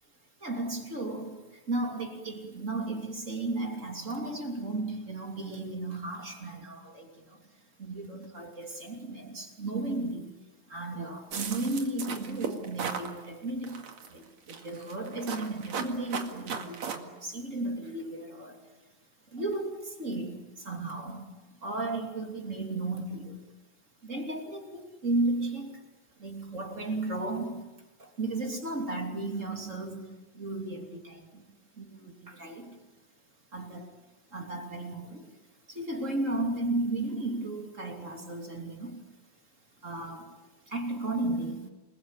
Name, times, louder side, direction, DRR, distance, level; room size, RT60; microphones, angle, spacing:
voice 1, 0.4-7.4 7.8-10.4 10.7-18.6 19.3-23.4 24.0-25.9 26.2-27.7 28.0-31.3 31.8-32.8 33.5-33.9 34.3-35.3 35.7-39.1 39.8-40.4 40.7-41.7, right 2 dB, 25° right, 3.1 m, -34 dB
sound 1, 11.3-13.1 13.6-14.1 14.5-17.0, right 6 dB, 65° right, 3.3 m, -36 dB
29.0 x 21.0 x 8.9 m
omnidirectional pair, 3.4 m